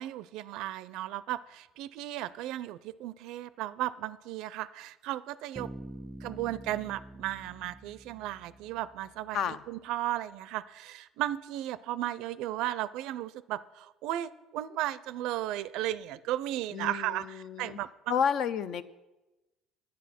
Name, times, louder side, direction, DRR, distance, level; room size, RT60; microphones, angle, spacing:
voice 1, 0.0-5.7 6.2-18.2, right 14 dB, 75° right, 17 dB, 0.4 m, -35 dB
Bass guitar, 5.5-9.3, right 1 dB, 20° right, 0.4 m, -46 dB
voice 2, 16.7-17.8 18.1-18.8, left 7 dB, 55° left, 14 dB, 0.6 m, -31 dB
10.5 x 9.5 x 5.9 m, 1.1 s
cardioid pair, 125°, 0 cm